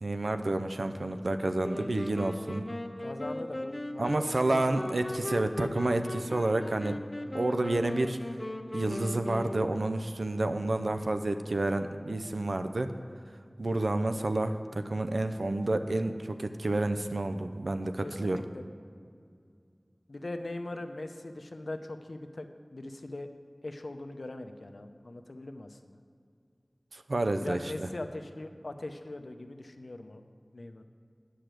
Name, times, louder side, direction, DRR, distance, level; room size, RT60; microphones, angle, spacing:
voice 1, 0.0-2.7 4.0-7.0 7.3-8.2 8.7-12.9 13.6-18.4 26.9-27.9, right 2 dB, 85° right, 8 dB, 0.5 m, -30 dB
sound 1, 1.6-10.1, left 1 dB, 45° left, 0.7 m, -38 dB
voice 2, 3.0-4.6 18.0-18.7 20.1-23.3 23.6-26.0 27.3-30.2 30.5-30.8, left 2 dB, 80° left, 7 dB, 0.6 m, -41 dB
10.0 x 5.0 x 7.6 m, 2.3 s
wide cardioid pair, 45°, 0 cm